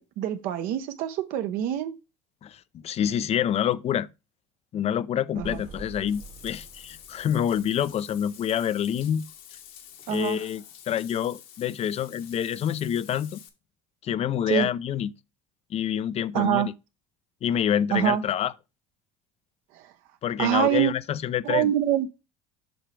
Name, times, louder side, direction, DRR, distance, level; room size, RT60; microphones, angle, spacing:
voice 1, 0.0-1.9 5.4-5.6 10.1-10.4 14.5-14.7 16.3-16.7 17.9-18.2 19.7-19.9 20.4-20.9 21.4-22.1, right 11 dB, 70° right, 0.9 m, -25 dB
voice 2, 2.4-4.1 4.7-9.2 10.1-13.4 14.0-15.1 15.7-16.7 17.4-18.5 20.2-21.7, left 9 dB, 45° left, 0.5 m, -27 dB
sound 1, 5.3-9.1 9.4-9.5, right 3 dB, 40° right, 1.3 m, -46 dB
Bathtub (filling or washing), 5.4-13.5, left 10 dB, 70° left, 1.5 m, -48 dB
7.8 x 5.7 x 3.3 m
supercardioid pair, 85°, 15 cm